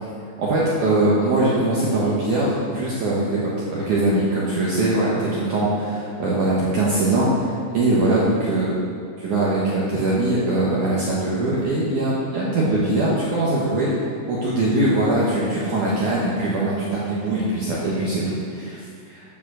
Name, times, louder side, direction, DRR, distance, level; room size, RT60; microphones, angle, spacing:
voice 1, 0.4-8.8 9.2-13.9 14.3-19.2, right 2 dB, 75° right, -7 dB, 1.8 m, -22 dB
10.0 x 6.8 x 6.2 m, 2.3 s
omnidirectional pair, 5.5 m